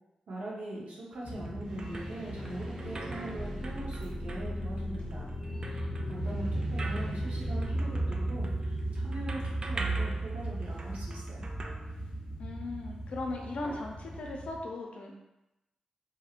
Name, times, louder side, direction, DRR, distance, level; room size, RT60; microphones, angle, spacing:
voice 1, 0.3-5.3 5.7-11.5, right 1 dB, 80° right, -5 dB, 0.9 m, -42 dB
sound 1, 1.1-12.6, right 3 dB, 40° right, 0.3 m, -41 dB
sound 2, 1.2-14.6, right 1 dB, 55° left, 0.8 m, -36 dB
sound 3, 1.6-8.0, equal, 25° right, 1.2 m, -46 dB
voice 2, 12.4-15.2, left 2 dB, 70° left, 1 dB, 0.5 m, -38 dB
2.9 x 2.7 x 2.4 m, 0.93 s
cardioid pair, 75°, 2 cm